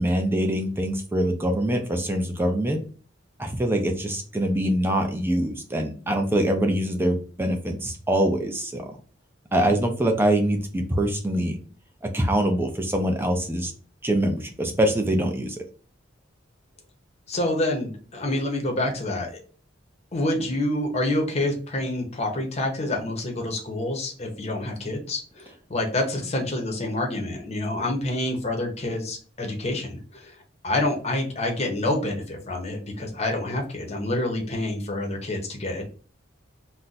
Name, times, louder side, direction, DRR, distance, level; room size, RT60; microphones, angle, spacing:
voice 1, 0.0-2.8 3.4-8.8 9.5-11.6 12.1-13.7 14.0-15.6, right 1 dB, 10° right, 3 dB, 0.4 m, -24 dB
voice 2, 17.3-19.4 20.1-30.3 30.6-35.8, left 1 dB, 35° left, 2 dB, 0.7 m, -27 dB
2.5 x 2.2 x 4.0 m, 0.40 s
head